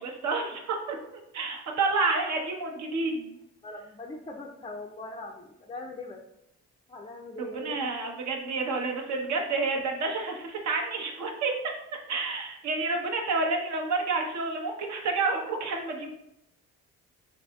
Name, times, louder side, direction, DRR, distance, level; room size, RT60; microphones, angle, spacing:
voice 1, 0.0-3.4 7.4-11.5 12.1-16.1, right 3 dB, 65° right, 2 dB, 0.8 m, -29 dB
voice 2, 3.6-6.2 6.9-7.8, left 2 dB, 20° left, 1 dB, 0.3 m, -41 dB
4.0 x 2.8 x 2.3 m, 0.82 s
cardioid pair, 90°, 30 cm